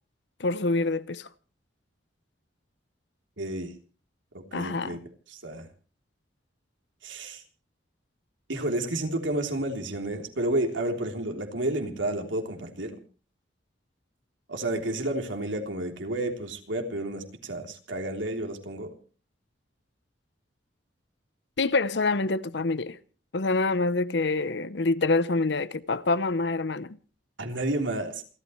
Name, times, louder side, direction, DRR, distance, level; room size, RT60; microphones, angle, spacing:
voice 1, 0.4-1.3 4.5-5.0 21.6-23.0 23.3-27.0, left 3 dB, 65° left, 0.9 m, -26 dB
voice 2, 3.4-3.7 4.3-5.0 5.3-5.7 7.0-7.4 8.5-13.0 14.5-18.9 27.4-28.2, right 1 dB, 90° right, 3.4 m, -31 dB
28.0 x 12.5 x 3.2 m
head